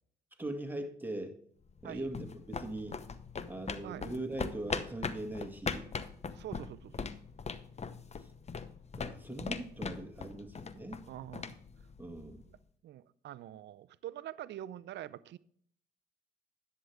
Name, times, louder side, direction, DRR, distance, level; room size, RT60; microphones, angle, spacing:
voice 1, 0.4-1.4 1.8-3.0 3.5-5.9 8.9-11.0 12.0-12.5, right 1 dB, 10° right, 4 dB, 1.9 m, -41 dB
sound 1, 1.7-12.5, left 5 dB, 35° left, 0.8 m, -41 dB
voice 2, 6.3-7.0 11.1-11.6 12.8-15.4, right 12 dB, 60° right, 17 dB, 0.5 m, -45 dB
11.0 x 8.0 x 3.5 m, 0.63 s
hypercardioid pair, 55°, 20 cm